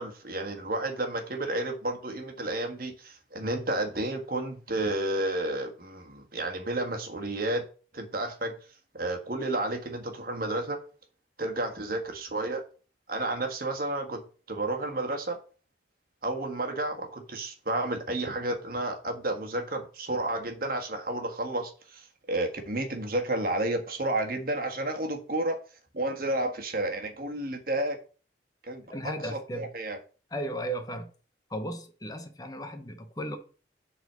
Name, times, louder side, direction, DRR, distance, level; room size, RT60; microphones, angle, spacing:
voice 1, 0.0-7.6 7.9-8.5 8.9-10.8 11.4-12.6 13.1-15.4 16.2-25.6 25.9-28.0 28.6-30.0, right 2 dB, 50° right, 1.6 m, -31 dB
voice 2, 28.9-29.7 30.3-31.1 31.5-33.4, right 1 dB, 20° left, 0.8 m, -35 dB
7.7 x 4.1 x 6.8 m
head